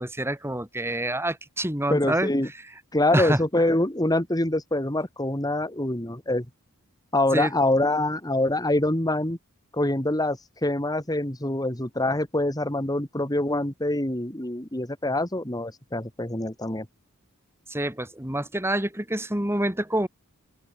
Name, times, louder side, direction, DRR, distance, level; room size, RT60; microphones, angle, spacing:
voice 1, 0.0-2.3 3.1-3.4 7.3-7.5 17.7-20.1, right 1 dB, 10° right, 4.4 m, -27 dB
voice 2, 1.9-2.5 2.9-6.5 7.1-9.4 9.7-16.9, left 1 dB, 15° left, 2.9 m, -25 dB
open air
head